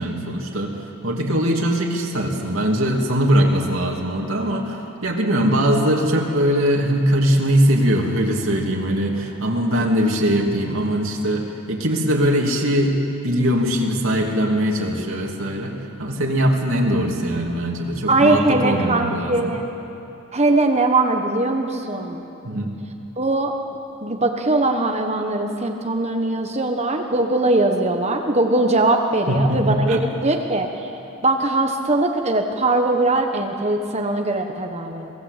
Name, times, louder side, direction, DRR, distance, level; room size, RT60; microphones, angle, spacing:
voice 1, 0.0-13.0 13.2-19.5 22.4-22.7 29.3-30.0, equal, 65° right, 0 dB, 3.0 m, -21 dB
voice 2, 18.1-19.7 20.3-22.2 23.2-23.5 24.0-30.7 31.2-35.1, right 2 dB, 30° right, 3 dB, 1.3 m, -20 dB
27.0 x 20.0 x 8.4 m, 2.9 s
head